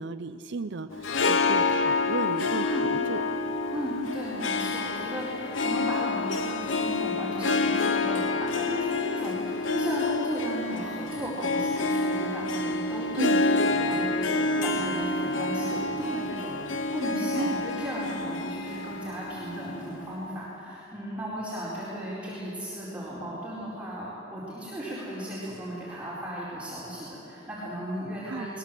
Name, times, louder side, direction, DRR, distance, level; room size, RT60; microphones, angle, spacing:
voice 1, 0.0-2.8 3.1-3.2 13.2-13.4 17.3-17.6 28.3-28.5, right 3 dB, 60° right, 10 dB, 0.6 m, -33 dB
Harp, 0.9-20.3, left 3 dB, 85° left, 1.1 m, -28 dB
voice 2, 3.7-28.6, equal, 5° right, -9 dB, 4.4 m, -35 dB
21.0 x 21.0 x 7.7 m, 3.0 s
head